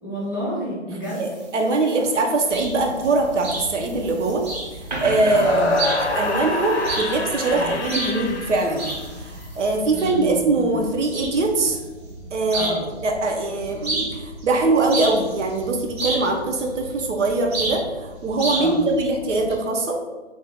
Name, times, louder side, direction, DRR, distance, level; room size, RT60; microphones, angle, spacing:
voice 1, 0.0-1.3 5.4-6.0 7.5-7.7 9.9-10.7 12.5-12.9 18.5-18.9, equal, 20° left, -8 dB, 0.4 m, -30 dB
sound 1, 1.0-9.8, right 2 dB, 40° right, 0.6 m, -38 dB
voice 2, 1.1-4.4 5.0-5.6 6.1-11.8 12.3-20.0, right 3 dB, 80° right, 2 dB, 0.7 m, -22 dB
sound 2, 2.5-19.5, right 2 dB, 60° right, 0.9 m, -32 dB
sound 3, 5.2-9.4, left 3 dB, 70° left, 0.6 m, -26 dB
2.7 x 2.2 x 3.4 m, 1.2 s
hypercardioid pair, 165°, 35 cm